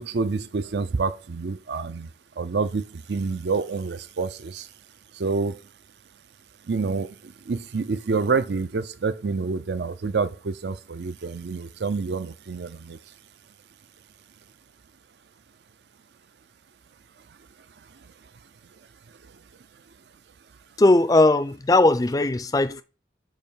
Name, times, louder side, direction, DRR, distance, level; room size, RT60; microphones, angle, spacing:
voice 1, 0.0-2.1 2.4-4.7 5.1-5.6 6.7-13.0, right 4 dB, 70° right, 0.5 m, -28 dB
voice 2, 20.8-22.8, left 2 dB, 20° left, 0.4 m, -18 dB
8.7 x 3.0 x 5.6 m
head